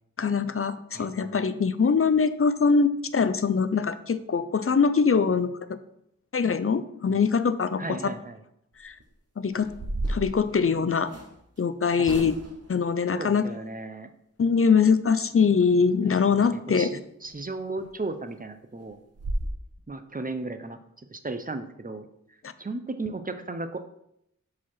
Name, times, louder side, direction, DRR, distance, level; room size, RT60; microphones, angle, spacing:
voice 1, 0.2-5.5 6.3-7.8 8.8-8.9 9.4-9.7 10.1-11.1 11.6-12.3 12.7-13.4 14.4-16.9, left 5 dB, 50° left, 13 dB, 0.5 m, -23 dB
voice 2, 0.9-1.3 7.1-7.2 7.8-8.4 12.0-12.3 13.1-14.1 16.3-19.0 19.9-20.8 21.1-22.1 22.6-23.8, right 3 dB, 30° right, 9 dB, 0.7 m, -35 dB
sound 1, 8.7-9.0 9.5-11.3 12.0-12.7 17.2-17.3 17.8-17.9 18.3-18.4 18.8-18.9 19.1-19.5, right 1 dB, 55° right, 1.0 m, -33 dB
5.0 x 4.2 x 5.6 m, 0.77 s
wide cardioid pair, 40°, 29 cm